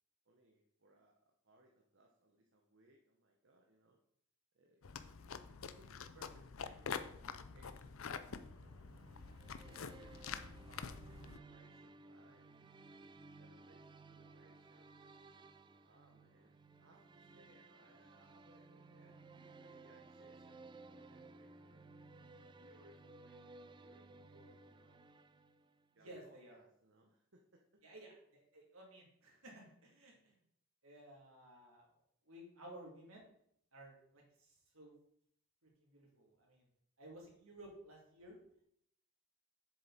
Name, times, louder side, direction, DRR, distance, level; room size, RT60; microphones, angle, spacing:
voice 1, 0.2-4.0 4.5-9.1 9.6-12.7 13.4-15.2 15.8-21.9 22.3-25.1 25.9-27.8, right 1 dB, 55° right, 1 dB, 1.0 m, -68 dB
sound 1, 4.8-11.4, left 6 dB, 65° left, 0.6 m, -47 dB
sound 2, 8.2-25.9, right 3 dB, 20° right, 0.4 m, -58 dB
voice 2, 26.0-26.6 27.8-30.3 30.8-31.9 32.2-33.3 33.7-34.9 35.6-36.6 37.0-38.4, right 1 dB, 70° right, -2 dB, 2.9 m, -56 dB
7.6 x 6.7 x 4.2 m, 0.69 s
head